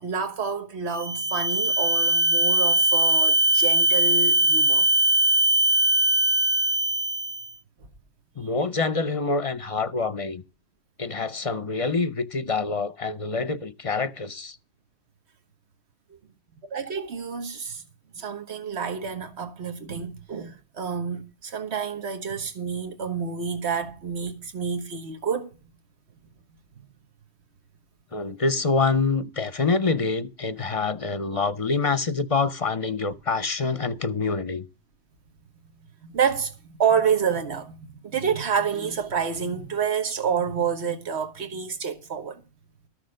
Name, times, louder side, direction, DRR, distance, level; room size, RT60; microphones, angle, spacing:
voice 1, 0.0-4.9 16.7-17.8 18.1-25.5 36.0-42.4, right 6 dB, 85° right, 1.5 m, -28 dB
sound 1, 0.9-7.5, right 2 dB, 15° right, 1.1 m, -21 dB
voice 2, 8.4-10.4 11.0-14.6 28.1-34.6, left 4 dB, 40° left, 0.6 m, -26 dB
13.5 x 6.6 x 6.4 m
omnidirectional pair, 1.1 m